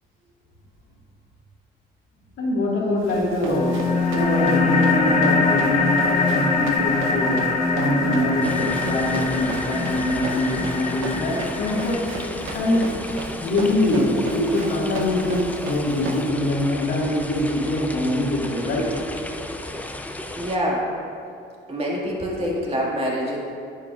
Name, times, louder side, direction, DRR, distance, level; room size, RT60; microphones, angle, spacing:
voice 1, 2.4-3.7 4.1-7.4 7.7-12.0 12.5-12.9 13.3-18.9, left 1 dB, 80° left, -4 dB, 1.8 m, -23 dB
Run, 3.0-16.3, right 3 dB, 85° right, 0.8 m, -36 dB
sound 1, 3.5-12.5, left 3 dB, 35° left, 1.1 m, -23 dB
sound 2, 8.4-20.6, left 1 dB, 10° left, 0.4 m, -34 dB
voice 2, 20.4-20.9 21.7-23.4, equal, 30° right, -4 dB, 1.9 m, -25 dB
10.0 x 7.5 x 2.4 m, 2.4 s
cardioid pair, 90°, 20 cm